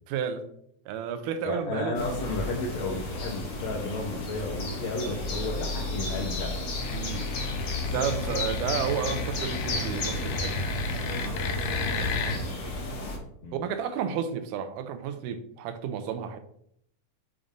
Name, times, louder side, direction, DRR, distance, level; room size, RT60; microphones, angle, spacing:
voice 1, 0.1-0.4 0.9-2.4 2.9-3.0 5.0-5.2 6.9-7.2 7.9-10.5 10.9-11.2 11.7-12.4 13.5-16.4, right 8 dB, 85° right, 9 dB, 2.2 m, -32 dB
voice 2, 1.4-6.5 13.4-13.6, left 3 dB, 70° left, -1 dB, 1.9 m, -33 dB
sound 1, 1.9-13.2, left 2 dB, 55° left, 1.9 m, -33 dB
sound 2, 6.7-12.4, left 4 dB, 85° left, 2.5 m, -32 dB
7.2 x 2.6 x 5.1 m, 0.71 s
omnidirectional pair, 3.6 m